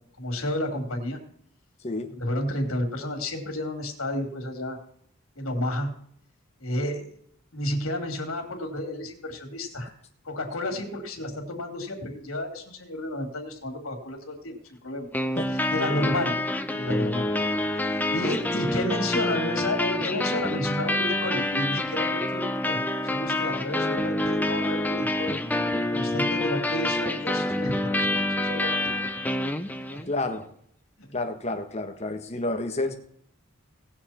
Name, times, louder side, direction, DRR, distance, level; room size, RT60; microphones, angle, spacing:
voice 1, 0.2-1.2 2.2-4.8 5.3-6.0 6.6-7.1 7.5-9.9 10.2-14.6 14.8-15.1 15.7-16.4 16.7-17.3 17.8-25.4 25.9-28.9 29.9-30.0 31.0-31.1, left 1 dB, 75° left, 3 dB, 3.1 m, -31 dB
sound 1, 15.1-30.1, left 1 dB, 10° left, 0.6 m, -27 dB
voice 2, 30.1-30.5 31.1-33.0, left 2 dB, 30° left, 5 dB, 1.3 m, -30 dB
19.0 x 7.0 x 4.4 m, 0.65 s
head